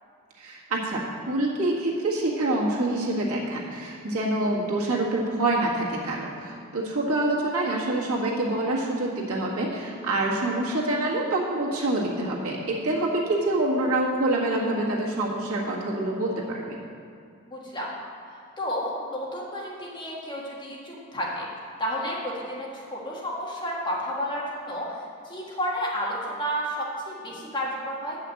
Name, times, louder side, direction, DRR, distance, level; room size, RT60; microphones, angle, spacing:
voice 1, 0.4-16.8, right 2 dB, 90° right, -4 dB, 1.8 m, -26 dB
voice 2, 17.5-17.9 18.3-21.5 21.8-24.9 25.2-28.2, equal, 20° left, -5 dB, 1.7 m, -31 dB
8.4 x 5.7 x 7.7 m, 2.3 s
head